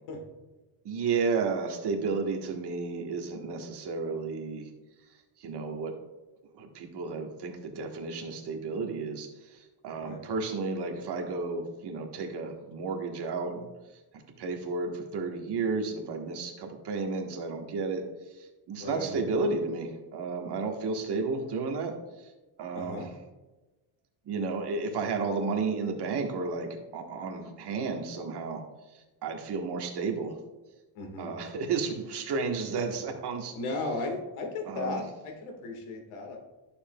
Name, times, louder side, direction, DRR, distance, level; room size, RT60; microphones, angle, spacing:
voice 1, 0.8-4.7 5.4-6.0 6.6-13.7 14.4-18.0 18.4-22.3 22.6-23.0 24.2-28.6 28.9-30.4 31.2-33.5 34.7-35.0, right 4 dB, 50° right, 2 dB, 1.4 m, -32 dB
voice 2, 18.8-19.2 22.7-23.1 30.9-31.3 32.9-33.0 33.5-36.4, left 2 dB, 90° left, 2 dB, 1.8 m, -36 dB
11.0 x 7.0 x 2.3 m, 1.1 s
cardioid pair, 125°, 50 cm